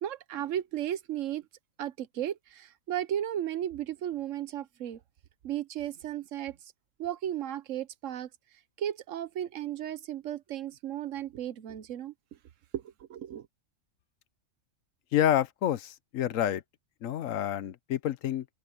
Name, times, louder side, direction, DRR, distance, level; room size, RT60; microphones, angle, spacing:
voice 1, 0.0-1.5 1.8-5.0 5.4-6.6 7.0-8.3 8.8-12.1 12.7-13.5, right 11 dB, 75° right, 1.1 m, -35 dB
voice 2, 15.1-16.6 17.0-18.5, left 11 dB, 80° left, 1.2 m, -28 dB
omnidirectional pair, 1.3 m